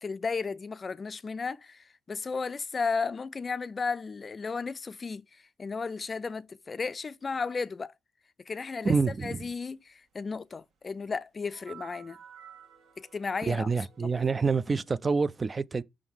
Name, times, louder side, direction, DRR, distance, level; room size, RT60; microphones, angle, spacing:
voice 1, 0.0-7.9 8.5-8.9 9.2-12.2 13.0-13.7 14.0-14.2, left 4 dB, 35° left, 0.4 m, -34 dB
voice 2, 8.8-9.5 13.5-15.8, right 4 dB, 30° right, 0.4 m, -27 dB
sound 1, 11.4-15.0, right 8 dB, 70° right, 1.8 m, -53 dB
6.2 x 3.7 x 6.1 m
cardioid pair, 90°, 0 cm